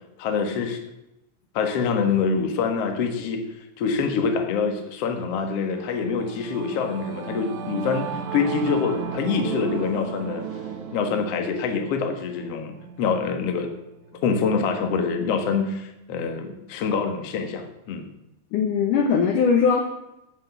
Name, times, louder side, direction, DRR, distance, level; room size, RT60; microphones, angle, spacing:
voice 1, 0.2-0.8 1.5-3.4 3.8-10.4 10.9-13.7 14.2-18.1, left 5 dB, 55° left, 5 dB, 1.9 m, -25 dB
Singing / Musical instrument, 5.5-15.2, right 7 dB, 60° right, 2.4 m, -36 dB
voice 2, 18.5-19.9, left 6 dB, 70° left, 4 dB, 2.1 m, -20 dB
13.0 x 5.9 x 7.3 m, 0.91 s
omnidirectional pair, 4.6 m